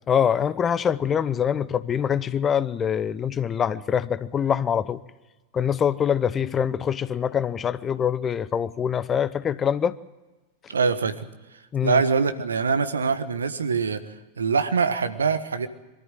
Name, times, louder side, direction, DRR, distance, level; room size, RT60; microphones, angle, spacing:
voice 1, 0.1-5.0 5.5-9.9 11.7-12.0, left 8 dB, 25° left, 0.7 m, -24 dB
voice 2, 10.7-11.3 11.8-15.7, right 5 dB, 70° right, 1.4 m, -24 dB
23.5 x 13.5 x 9.1 m
figure-of-eight pair, 90°, 0 cm